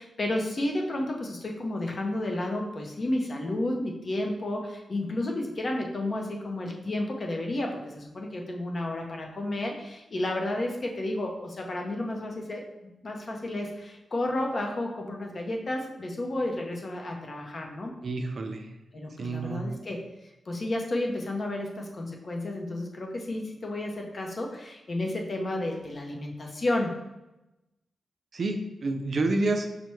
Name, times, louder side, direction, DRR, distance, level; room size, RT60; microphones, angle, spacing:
voice 1, 0.0-12.6 13.0-17.9 18.9-20.1 20.5-27.0, left 1 dB, 40° left, 1 dB, 0.6 m, -31 dB
voice 2, 18.0-18.7 19.2-19.7 28.3-29.7, right 2 dB, 50° right, 5 dB, 0.4 m, -29 dB
5.4 x 2.1 x 3.1 m, 0.97 s
wide cardioid pair, 125°, 0 cm